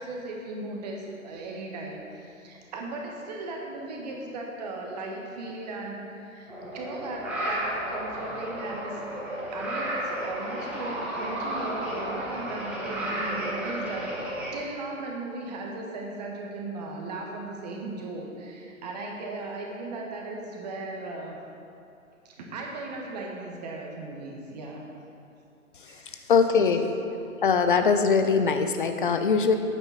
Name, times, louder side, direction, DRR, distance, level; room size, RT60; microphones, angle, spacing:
voice 1, 0.0-9.0 9.5-21.4 22.2-24.8 25.8-26.3, right 2 dB, 30° right, 0 dB, 1.5 m, -37 dB
sound 1, 6.5-14.5, right 1 dB, 5° right, 1.0 m, -33 dB
voice 2, 26.3-26.9 27.4-29.6, left 5 dB, 40° left, 7 dB, 0.7 m, -22 dB
10.5 x 9.0 x 4.1 m, 2.6 s
figure-of-eight pair, 135°, 41 cm